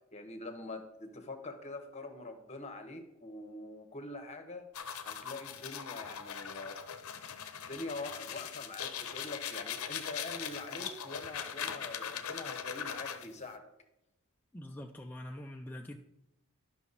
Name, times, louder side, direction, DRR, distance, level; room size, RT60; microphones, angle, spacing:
voice 1, 0.1-4.7 5.0-6.8 7.6-13.6, left 2 dB, 30° left, 6 dB, 1.2 m, -44 dB
sound 1, 4.7-13.4, left 8 dB, 80° left, 0.7 m, -41 dB
voice 2, 14.5-16.0, left 1 dB, 10° left, 1 dB, 0.4 m, -44 dB
11.0 x 5.9 x 4.1 m, 0.87 s
head